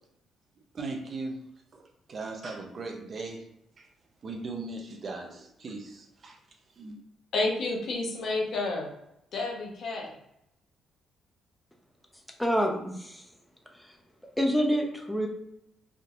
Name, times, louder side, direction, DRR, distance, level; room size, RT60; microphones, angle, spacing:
voice 1, 0.7-1.4 1.7-3.5 3.8-3.9 4.2-6.4 6.7-7.0, right 3 dB, 45° right, 3 dB, 0.6 m, -38 dB
voice 2, 7.3-8.9 9.3-10.1, left 2 dB, 65° left, -1 dB, 0.9 m, -30 dB
voice 3, 12.4-13.3 13.7-13.9 14.4-15.3, equal, 5° left, 2 dB, 0.6 m, -27 dB
3.6 x 2.7 x 2.4 m, 0.79 s
cardioid pair, 90°, 0 cm